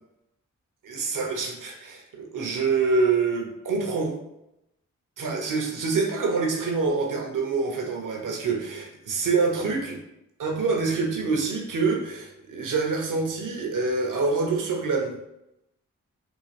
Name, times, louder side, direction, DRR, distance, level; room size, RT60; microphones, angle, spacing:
voice 1, 0.8-4.1 5.2-10.0 10.4-15.1, right 4 dB, 70° right, 2 dB, 0.8 m, -26 dB
3.6 x 2.4 x 3.2 m, 0.86 s
cardioid pair, 40°, 33 cm